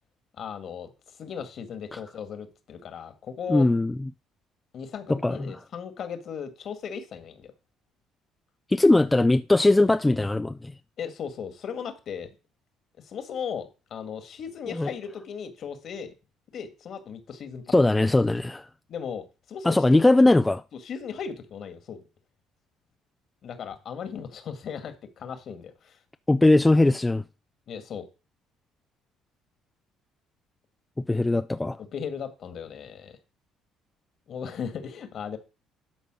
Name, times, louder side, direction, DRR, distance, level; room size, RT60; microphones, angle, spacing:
voice 1, 0.4-0.9 1.2-3.7 4.7-7.5 11.0-12.3 13.0-16.1 16.5-17.7 18.9-20.1 20.8-22.0 23.4-26.0 27.7-28.1 31.9-33.1 34.3-35.4, left 7 dB, 55° left, 1.8 m, -37 dB
voice 2, 3.5-3.9 5.1-5.5 8.7-10.7 14.7-14.9 17.7-18.7 19.6-20.6 26.3-27.2 31.0-31.8, left 2 dB, 15° left, 0.5 m, -20 dB
11.5 x 4.1 x 6.2 m
supercardioid pair, 75°, 0 cm